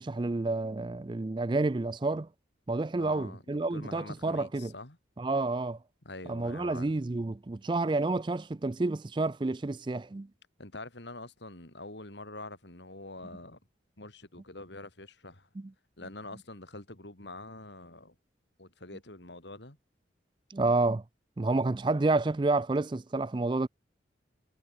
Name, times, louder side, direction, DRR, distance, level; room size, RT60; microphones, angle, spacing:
voice 1, 0.0-2.3 2.7-4.7 5.2-5.8 6.3-10.3 15.6-15.7 20.5-21.0 21.4-23.7, right 2 dB, 25° right, 0.4 m, -29 dB
voice 2, 3.0-5.0 6.1-6.9 10.6-13.6 14.0-15.5 16.0-18.2 18.6-19.8, left 2 dB, 70° left, 3.9 m, -45 dB
head